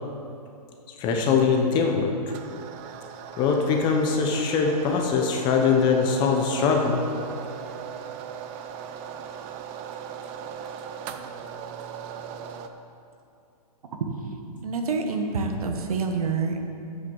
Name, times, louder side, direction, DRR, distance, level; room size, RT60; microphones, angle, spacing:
voice 1, 1.0-2.1 3.4-7.0, left 5 dB, 25° left, 2 dB, 0.9 m, -22 dB
sound 1, 2.3-12.7, right 7 dB, 20° right, 0.4 m, -38 dB
voice 2, 14.6-16.6, right 4 dB, 65° right, 4 dB, 1.3 m, -27 dB
8.1 x 6.4 x 7.1 m, 2.5 s
hypercardioid pair, 150°, 20 cm